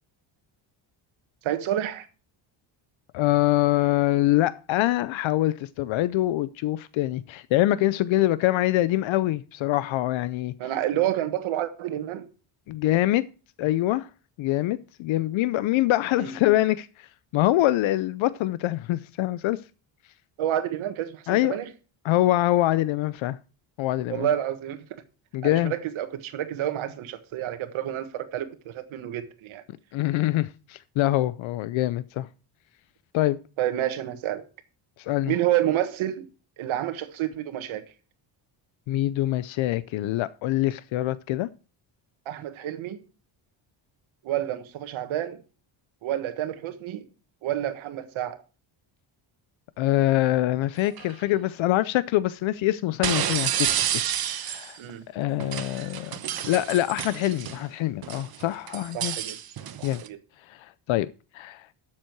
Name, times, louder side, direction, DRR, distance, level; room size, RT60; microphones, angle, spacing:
voice 1, 1.4-2.1 10.6-12.3 16.1-16.4 20.4-21.7 24.1-24.8 25.4-29.6 33.6-34.5 35.3-36.3 36.6-37.9 42.3-43.0 44.2-45.4 46.0-47.0 47.4-48.4 54.8-55.0 58.9-59.4 59.8-60.2, right 12 dB, 85° right, 1.6 m, -29 dB
voice 2, 3.1-10.5 12.7-13.3 13.6-14.1 14.4-17.1 17.3-19.6 21.3-21.5 22.0-23.4 23.8-24.3 25.3-25.7 29.9-32.3 33.1-33.4 35.0-35.3 38.9-41.5 49.8-54.8 55.1-59.2 59.8-60.0 60.5-61.7, left 15 dB, 75° left, 0.6 m, -24 dB
sound 1, 50.9-51.1 53.0-54.8 55.4-57.6 58.0-60.1, right 10 dB, 50° right, 1.0 m, -30 dB
12.0 x 7.5 x 4.5 m
cardioid pair, 160°, 47 cm